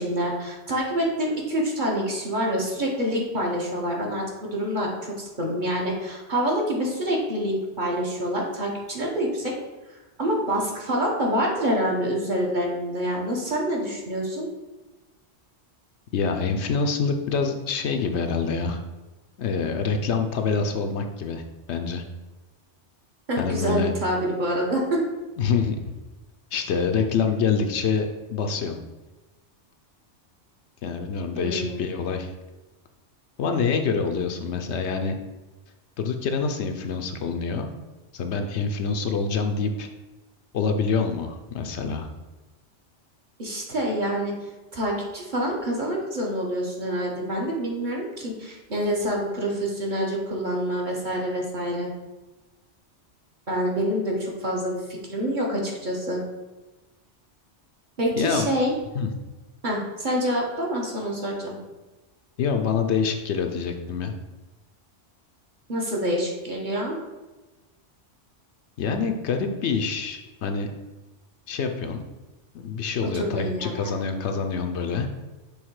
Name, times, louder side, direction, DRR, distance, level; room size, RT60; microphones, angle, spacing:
voice 1, 0.0-9.5 10.2-14.5 23.3-25.0 31.3-31.8 43.4-44.3 44.7-51.9 53.5-56.2 58.0-58.7 59.6-61.6 65.7-66.9 73.0-73.9, equal, 40° right, -2 dB, 1.3 m, -26 dB
voice 2, 16.1-18.8 19.4-21.4 21.7-22.0 23.4-23.9 25.4-25.8 26.5-28.8 30.8-32.3 33.4-35.2 36.0-37.7 38.1-39.9 40.5-42.1 58.2-58.5 58.9-59.1 62.4-64.1 68.8-70.7 71.5-72.0 72.5-75.1, left 5 dB, 70° left, 5 dB, 0.9 m, -26 dB
6.4 x 3.5 x 4.7 m, 1.1 s
omnidirectional pair, 1.2 m